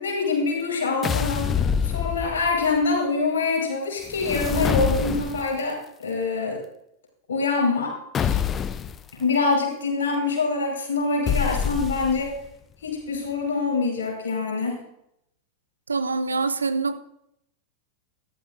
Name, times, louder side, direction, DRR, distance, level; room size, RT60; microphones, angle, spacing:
voice 1, 0.0-1.5 1.8-6.6 7.3-7.9 8.2-8.4 9.2-12.3 12.8-14.8, left 3 dB, 65° left, -1 dB, 5.1 m, -25 dB
sound 1, 1.0-2.6 4.1-5.6 8.1-9.0 11.3-12.4, left 8 dB, 25° left, 0.6 m, -26 dB
voice 2, 15.9-17.0, right 4 dB, 75° right, 12 dB, 0.7 m, -25 dB
14.0 x 12.0 x 2.6 m, 0.77 s
figure-of-eight pair, 90°, 0 cm